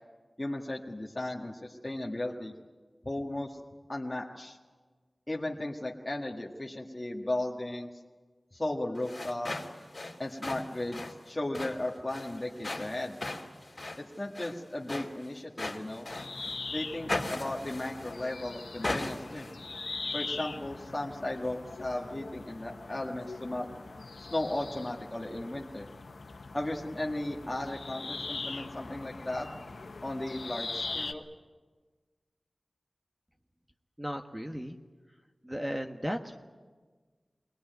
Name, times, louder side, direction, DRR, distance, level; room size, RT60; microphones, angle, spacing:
voice 1, 0.4-2.5 3.0-3.6 3.9-4.6 5.3-7.9 8.5-9.5 10.2-13.2 14.0-16.1 16.7-19.5 20.1-23.7 24.3-25.9 26.5-29.5 30.0-31.2, left 1 dB, 30° left, -1 dB, 1.7 m, -35 dB
sound 1, 8.9-16.6 17.1-18.3 18.8-19.5, left 2 dB, 45° left, 2.5 m, -38 dB
sound 2, 16.1-31.1, left 3 dB, 90° left, 1.1 m, -41 dB
voice 2, 34.0-34.8 35.4-36.4, equal, 15° right, 4 dB, 1.3 m, -35 dB
22.5 x 18.5 x 9.2 m, 1.4 s
wide cardioid pair, 50°, 0 cm